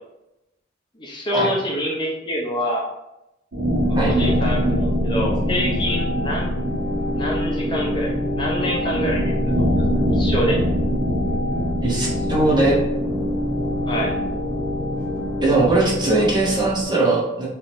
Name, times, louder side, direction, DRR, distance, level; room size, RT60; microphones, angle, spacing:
voice 1, 1.0-2.9 4.0-6.5 7.1-9.7 10.1-10.6 13.9-14.1, equal, 25° left, -3 dB, 0.6 m, -26 dB
sound 1, 3.5-16.8, equal, 70° right, 1.3 m, -23 dB
voice 2, 11.8-12.8 15.4-17.5, right 2 dB, 25° right, -4 dB, 0.8 m, -20 dB
3.5 x 2.9 x 2.5 m, 0.89 s
head